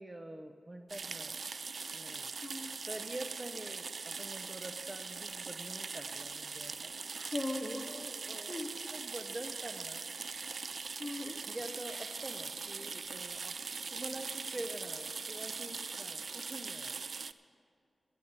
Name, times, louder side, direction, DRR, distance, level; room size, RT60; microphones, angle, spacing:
voice 1, 0.0-1.3 1.9-2.3 2.9-6.9 7.9-8.6 8.9-10.4 11.5-13.5 13.9-17.0, right 1 dB, 25° right, 7 dB, 0.7 m, -46 dB
sound 1, 0.9-17.3, right 4 dB, 65° right, 0.3 m, -41 dB
voice 2, 2.4-2.8 7.2-8.1 8.5-8.8 11.0-11.4, left 2 dB, 20° left, 3 dB, 1.5 m, -39 dB
13.5 x 11.5 x 5.4 m, 2.4 s
cardioid pair, 50°, 0 cm